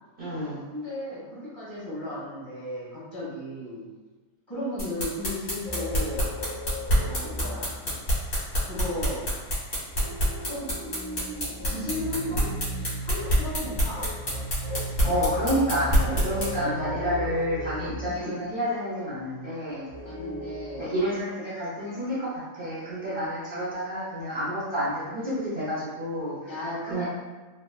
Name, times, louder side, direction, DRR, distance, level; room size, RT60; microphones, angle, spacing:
voice 1, 0.2-0.6 15.0-19.9 20.8-26.5 26.9-27.0, equal, 55° right, -9 dB, 0.6 m, -29 dB
voice 2, 0.7-3.9 4.5-6.3 7.0-7.7 8.7-9.3 10.5-10.7 11.7-12.5 13.0-14.0 16.0-16.3 16.6-17.2 18.1-18.4 20.0-21.0 26.5-27.0, left 1 dB, 20° left, -9 dB, 0.8 m, -35 dB
sound 1, 4.8-16.5, equal, 55° left, 1.4 m, -25 dB
sound 2, 5.6-8.3 9.9-13.1 13.9-18.3 19.9-20.8, left 1 dB, 15° right, 1.0 m, -37 dB
sound 3, 11.8-17.9, right 2 dB, 80° right, 1.1 m, -37 dB
3.4 x 2.2 x 2.2 m, 1.2 s
omnidirectional pair, 1.7 m